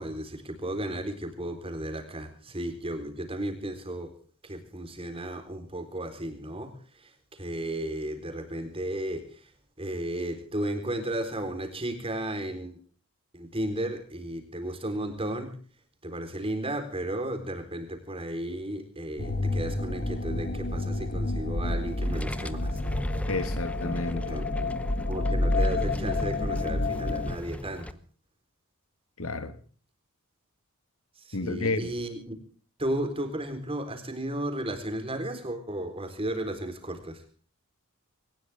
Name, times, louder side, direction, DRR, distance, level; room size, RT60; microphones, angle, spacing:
voice 1, 0.0-4.1 4.4-9.5 9.8-12.8 13.3-15.6 16.0-22.8 24.1-24.7 25.1-28.0 31.2-32.4 32.8-37.2, right 1 dB, 25° right, 4.0 m, -34 dB
sound 1, 19.2-27.4, left 2 dB, 45° left, 1.6 m, -29 dB
sound 2, 21.9-27.9, equal, 5° left, 0.8 m, -38 dB
voice 2, 23.3-24.4 29.2-29.6 31.3-31.9, left 3 dB, 70° left, 1.9 m, -31 dB
21.0 x 19.5 x 3.6 m
head